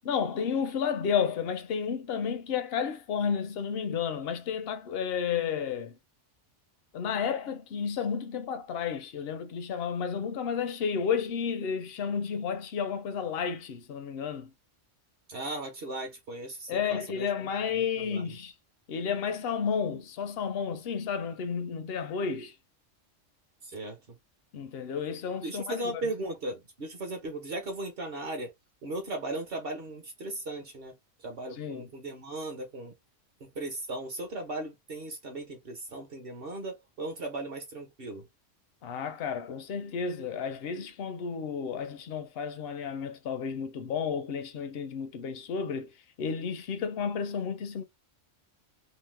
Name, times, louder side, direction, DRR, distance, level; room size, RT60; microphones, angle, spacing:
voice 1, 0.1-6.0 6.9-14.5 16.7-18.5 18.9-22.5 24.5-25.8 31.6-31.9 38.8-45.9 46.2-47.8, left 6 dB, 65° left, 0.7 m, -32 dB
voice 2, 15.3-17.3 17.7-18.4 23.6-24.2 25.4-28.5 28.8-30.9 31.2-32.9 33.4-38.3, right 2 dB, 55° right, 0.9 m, -37 dB
2.9 x 2.0 x 3.1 m
omnidirectional pair, 1.3 m